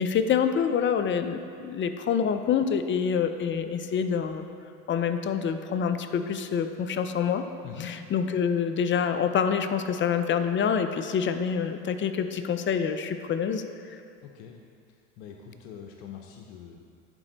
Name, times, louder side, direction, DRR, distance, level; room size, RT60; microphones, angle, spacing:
voice 1, 0.0-4.4 4.9-7.4 7.8-14.0, left 7 dB, 35° left, 9 dB, 0.5 m, -26 dB
voice 2, 14.2-14.6 15.2-16.8, left 8 dB, 80° left, 2 dB, 0.7 m, -42 dB
11.0 x 4.3 x 3.9 m, 2.3 s
supercardioid pair, 85°, 34 cm